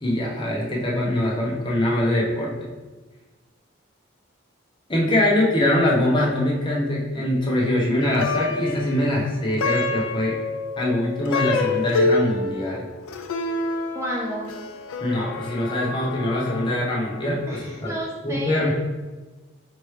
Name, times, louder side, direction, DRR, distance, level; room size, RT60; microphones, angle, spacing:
voice 1, 0.0-2.5 4.9-10.4 10.8-12.9 15.0-17.9 18.2-18.7, left 1 dB, 25° left, -4 dB, 0.8 m, -23 dB
Plucked string instrument, 8.0-17.4, left 3 dB, 80° left, 0.3 m, -28 dB
voice 2, 13.9-14.5 17.5-18.7, right 1 dB, 15° right, -3 dB, 0.3 m, -31 dB
4.4 x 3.0 x 3.2 m, 1.3 s
head